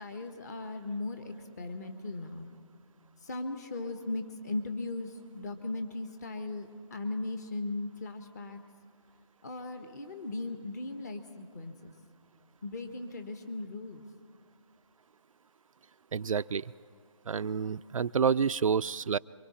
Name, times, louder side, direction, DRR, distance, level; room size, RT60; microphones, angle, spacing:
voice 1, 0.0-2.5 3.2-8.6 9.4-11.9 12.6-14.0, left 2 dB, 30° left, 7 dB, 1.3 m, -38 dB
voice 2, 16.1-16.7 17.3-19.2, right 6 dB, 80° right, 13 dB, 0.4 m, -29 dB
27.5 x 23.0 x 4.3 m, 2.1 s
figure-of-eight pair, 165°, 17 cm